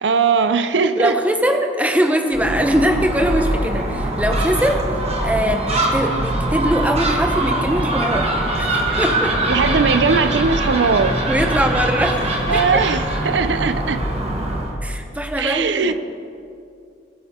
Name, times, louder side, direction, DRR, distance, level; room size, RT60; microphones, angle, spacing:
voice 1, 0.0-1.2 9.5-11.2 12.5-14.0 15.4-15.9, right 5 dB, 90° right, 11 dB, 0.5 m, -19 dB
voice 2, 1.0-4.8 5.2-8.3 8.6-9.4 11.3-12.8 14.8-15.9, equal, 10° right, 5 dB, 0.9 m, -21 dB
Gull seagull, 2.3-14.7, right 1 dB, 35° right, 1.6 m, -22 dB
19.0 x 9.2 x 3.7 m, 2.5 s
head